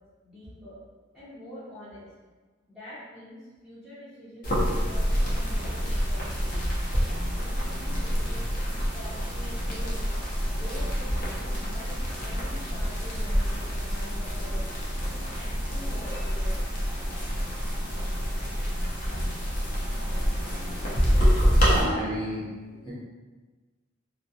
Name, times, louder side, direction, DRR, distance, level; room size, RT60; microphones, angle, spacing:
voice 1, 0.2-0.8 1.1-2.1 2.7-6.7 7.4-8.5 8.9-10.2 10.5-14.7 15.1-16.8, equal, ahead, -15 dB, 0.6 m, -45 dB
sound 1, 4.4-21.8, equal, 45° left, 0.6 m, -27 dB
voice 2, 21.5-22.9, equal, 25° left, -10 dB, 1.0 m, -32 dB
2.3 x 2.1 x 2.6 m, 1.3 s
head